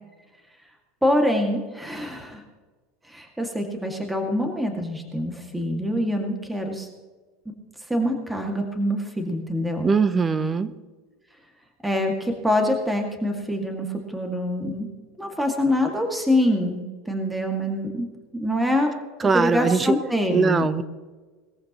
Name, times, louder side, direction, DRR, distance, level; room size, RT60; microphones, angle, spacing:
voice 1, 1.0-2.4 3.1-6.9 7.9-9.9 11.8-14.9 15.2-18.1 18.4-18.9 19.2-20.7, left 1 dB, 5° right, 3 dB, 2.2 m, -25 dB
voice 2, 9.8-10.7 19.2-20.0 20.3-20.8, right 5 dB, 20° right, 14 dB, 0.8 m, -21 dB
21.0 x 14.5 x 3.1 m, 1.3 s
supercardioid pair, 115°, 0 cm